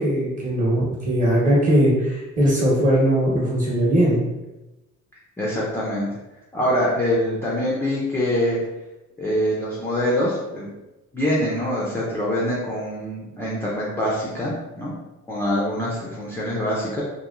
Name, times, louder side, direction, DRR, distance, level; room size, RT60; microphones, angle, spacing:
voice 1, 0.0-4.2, equal, 25° right, -6 dB, 0.9 m, -19 dB
voice 2, 5.4-6.2 6.5-8.6 9.2-10.7 11.1-14.9 15.3-17.0, equal, 10° left, -7 dB, 0.3 m, -24 dB
2.9 x 2.5 x 2.4 m, 1.0 s
cardioid pair, 175°, 29 cm